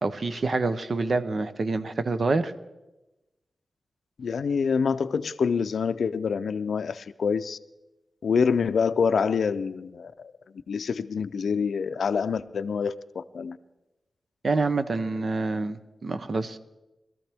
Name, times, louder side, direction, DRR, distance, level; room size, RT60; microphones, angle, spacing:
voice 1, 0.0-2.5 14.4-16.6, right 3 dB, 45° right, 11 dB, 0.6 m, -27 dB
voice 2, 4.2-7.6 8.2-10.1 10.7-13.6, left 6 dB, 75° left, 13 dB, 0.5 m, -26 dB
20.5 x 13.5 x 3.5 m, 1.0 s
wide cardioid pair, 180°, 0 cm